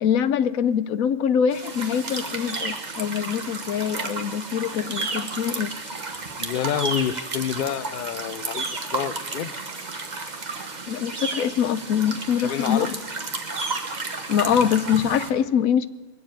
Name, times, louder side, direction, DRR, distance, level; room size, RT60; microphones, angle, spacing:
voice 1, 0.0-5.7 10.9-12.9 14.3-15.9, left 8 dB, 90° left, 15 dB, 1.1 m, -23 dB
sound 1, 1.5-15.3, right 3 dB, 35° right, 1.4 m, -32 dB
voice 2, 6.4-9.5 12.4-12.9, left 9 dB, 55° left, 16 dB, 0.6 m, -28 dB
21.5 x 7.4 x 8.9 m, 1.2 s
omnidirectional pair, 1.4 m